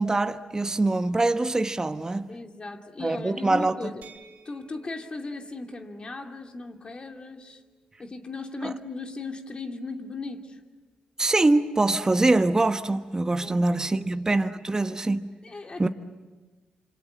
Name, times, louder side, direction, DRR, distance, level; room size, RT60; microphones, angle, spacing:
voice 1, 0.0-2.3 3.0-3.8 8.6-8.7 11.2-15.3 15.8-15.9, right 2 dB, 25° right, 1.2 m, -24 dB
voice 2, 2.3-4.0 4.4-7.6 8.0-10.6 13.4-13.6 13.9-14.1 15.4-15.9, left 3 dB, 40° left, 2.7 m, -37 dB
sound 1, 4.0-9.8, right 5 dB, 80° right, 4.0 m, -57 dB
27.0 x 26.0 x 7.6 m
cardioid pair, 65°, 3 cm